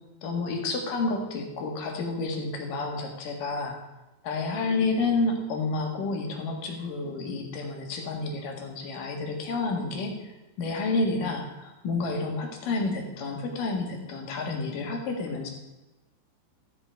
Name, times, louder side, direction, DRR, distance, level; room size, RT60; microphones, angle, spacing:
voice 1, 0.2-3.8 4.2-10.3 10.6-15.5, left 3 dB, 55° left, 2 dB, 2.9 m, -30 dB
14.0 x 9.5 x 4.7 m, 1.1 s
omnidirectional pair, 5.6 m